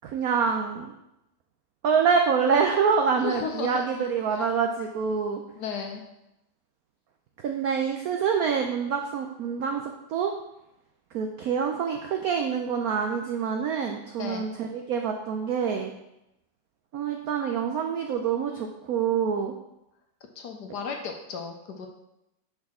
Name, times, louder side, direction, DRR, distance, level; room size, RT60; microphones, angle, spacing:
voice 1, 0.0-0.9 1.8-5.4 7.4-10.3 11.1-15.9 16.9-19.5, right 6 dB, 85° right, 3 dB, 0.8 m, -26 dB
voice 2, 3.2-3.9 4.3-4.5 5.6-6.0 14.2-14.5 20.4-21.9, left 6 dB, 70° left, 4 dB, 1.1 m, -34 dB
6.0 x 5.2 x 3.7 m, 0.87 s
omnidirectional pair, 2.1 m